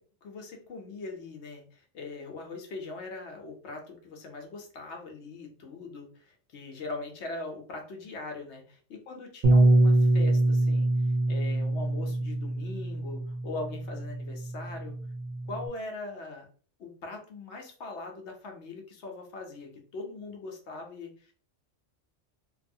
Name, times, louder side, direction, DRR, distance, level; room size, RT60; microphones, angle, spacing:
voice 1, 0.0-8.6 8.9-15.0 15.5-16.4 16.8-21.1, left 3 dB, 70° left, 2 dB, 0.9 m, -41 dB
Bass guitar, 9.4-15.7, right 2 dB, 55° right, 0.4 m, -25 dB
2.7 x 2.3 x 2.6 m, 0.43 s
omnidirectional pair, 1.3 m